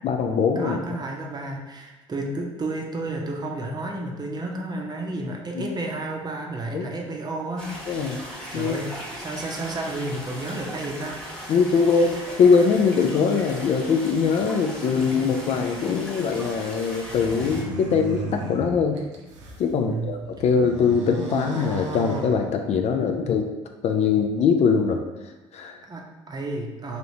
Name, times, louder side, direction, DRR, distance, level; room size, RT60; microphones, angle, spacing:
voice 1, 0.0-0.8 5.5-5.6 6.7-6.9 7.9-8.2 8.5-8.8 11.5-19.0 19.6-23.5 23.8-25.0 25.5-25.8, left 5 dB, 45° left, 4 dB, 0.4 m, -22 dB
voice 2, 0.6-7.7 8.0-11.5 11.9-12.1 19.7-20.2 25.9-27.0, right 2 dB, 25° right, 0 dB, 0.7 m, -32 dB
sound 1, 7.6-17.6, equal, 5° left, 1.2 m, -38 dB
sound 2, 17.0-19.7 20.1-23.0, right 1 dB, 90° right, 0.5 m, -34 dB
3.1 x 2.7 x 2.7 m, 1.1 s
hypercardioid pair, 60°, 15 cm